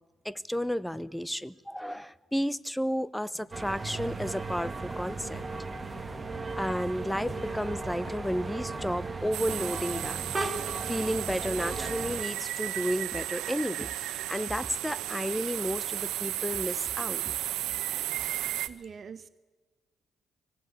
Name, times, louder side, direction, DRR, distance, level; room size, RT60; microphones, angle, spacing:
voice 1, 0.2-5.4 6.6-10.2 10.9-17.4, equal, 5° left, 18 dB, 0.8 m, -32 dB
Walk footsteps, 3.3-3.5 4.0-4.2 4.6-4.8 5.3-5.5 5.9-6.2 6.6-6.8 7.2-7.5 8.0-8.2, left 5 dB, 75° left, 7.6 m, -51 dB
sound 1, 3.5-12.2, right 3 dB, 25° right, 1.7 m, -36 dB
sound 2, 9.3-18.7, right 14 dB, 90° right, 0.9 m, -34 dB
voice 2, 18.4-19.3, right 6 dB, 50° right, 11 dB, 1.0 m, -47 dB
25.0 x 18.5 x 8.3 m, 1.3 s
cardioid pair, 90°, 0 cm